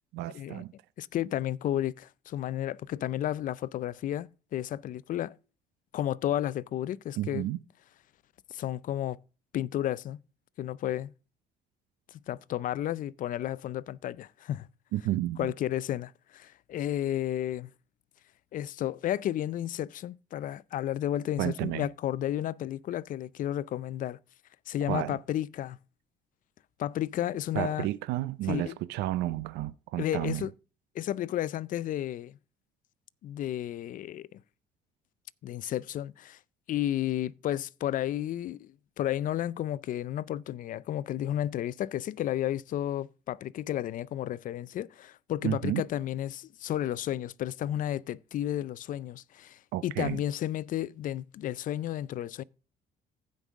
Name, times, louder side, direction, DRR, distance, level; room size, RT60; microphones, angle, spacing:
voice 1, 0.1-0.7 7.2-7.6 14.9-15.5 21.4-21.9 24.9-25.2 27.5-30.5 45.4-45.8 49.7-50.2, right 15 dB, 85° right, 0.5 m, -31 dB
voice 2, 1.0-5.4 5.9-7.5 8.5-9.2 9.5-10.2 10.6-11.1 12.1-14.7 15.4-17.7 18.5-24.2 24.7-25.8 26.8-27.9 28.5-28.7 30.0-30.5 30.9-32.4 33.2-34.4 35.4-36.4 36.7-52.4, left 12 dB, 50° left, 0.4 m, -32 dB
15.5 x 5.4 x 3.6 m
cardioid pair, 110°, 17 cm